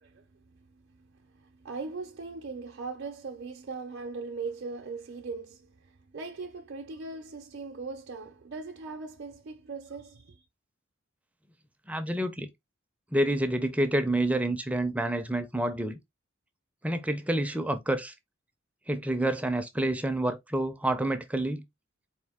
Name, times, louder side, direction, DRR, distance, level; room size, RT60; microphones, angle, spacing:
voice 1, 0.0-10.4, right 4 dB, 55° right, 0.6 m, -40 dB
voice 2, 11.9-12.5 13.1-16.0 16.8-18.1 18.9-21.6, right 1 dB, 5° right, 0.5 m, -28 dB
4.3 x 2.6 x 3.5 m
head